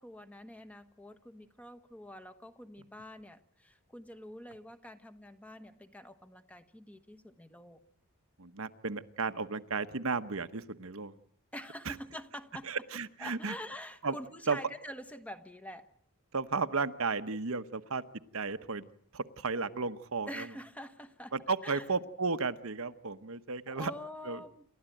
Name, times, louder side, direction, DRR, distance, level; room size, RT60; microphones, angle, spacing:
voice 1, 0.0-7.8 11.5-12.7 13.2-15.9 20.3-21.3 21.6-21.8 23.7-24.6, left 1 dB, 5° left, 9 dB, 1.2 m, -46 dB
voice 2, 8.4-11.1 11.8-12.0 12.7-13.5 14.0-14.2 14.5-14.6 16.3-18.0 18.3-18.9 19.1-20.5 21.3-23.9 24.2-24.4, right 4 dB, 70° right, 11 dB, 1.1 m, -34 dB
29.0 x 13.5 x 9.1 m, 0.72 s
head